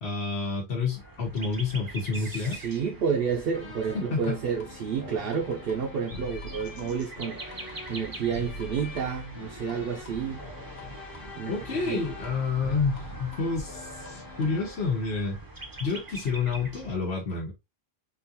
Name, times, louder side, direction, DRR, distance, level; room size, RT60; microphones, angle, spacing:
voice 1, 0.0-2.6 3.9-4.4 11.5-15.4 15.8-17.5, left 4 dB, 75° left, 1.2 m, -29 dB
sound 1, 0.9-17.0, right 2 dB, 25° right, 0.6 m, -44 dB
voice 2, 2.1-10.4 11.4-11.5 11.8-12.0, right 6 dB, 65° right, 0.8 m, -30 dB
sound 2, 3.5-15.0, left 3 dB, 60° left, 1.0 m, -43 dB
3.8 x 2.5 x 2.6 m
omnidirectional pair, 1.1 m